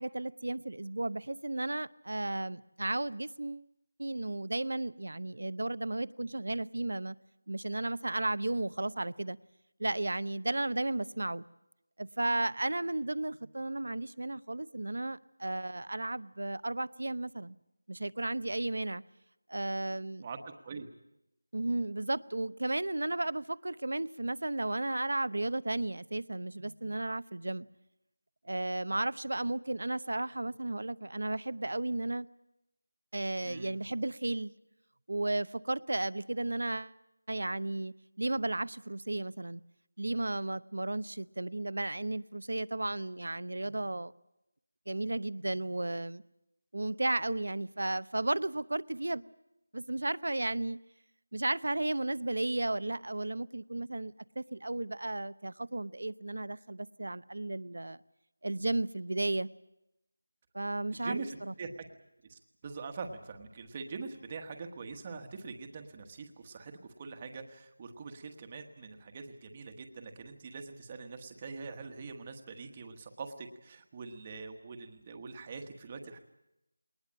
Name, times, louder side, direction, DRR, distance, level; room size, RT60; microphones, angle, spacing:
voice 1, 0.0-3.7 4.0-7.2 7.5-9.4 9.8-11.4 12.0-17.6 17.9-19.0 19.5-20.2 21.5-27.7 28.4-32.3 33.1-34.5 35.1-36.9 37.3-39.6 40.0-44.1 44.9-46.2 46.7-49.2 49.7-50.8 51.3-58.0 58.4-59.5 60.5-61.2, right 2 dB, 75° right, 0.7 m, -34 dB
voice 2, 20.2-20.9 33.4-33.7 60.9-61.7 62.3-76.2, right 4 dB, 20° right, 1.3 m, -44 dB
21.0 x 19.5 x 8.8 m
figure-of-eight pair, 175°, 0 cm